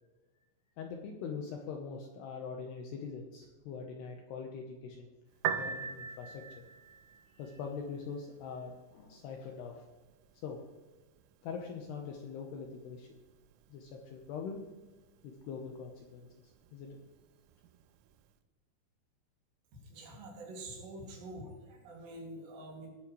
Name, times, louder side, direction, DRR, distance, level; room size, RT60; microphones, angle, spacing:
voice 1, 0.8-5.1 5.6-6.6 7.3-9.9 10.4-10.6 11.4-13.1 13.7-14.6 15.2-16.3 16.7-17.0, left 5 dB, 75° left, 2 dB, 2.5 m, -43 dB
Piano, 5.3-18.3, right 8 dB, 80° right, 2.8 m, -45 dB
voice 2, 19.9-22.9, right 1 dB, 60° right, -1 dB, 4.5 m, -46 dB
19.0 x 9.6 x 3.2 m, 1.2 s
omnidirectional pair, 5.9 m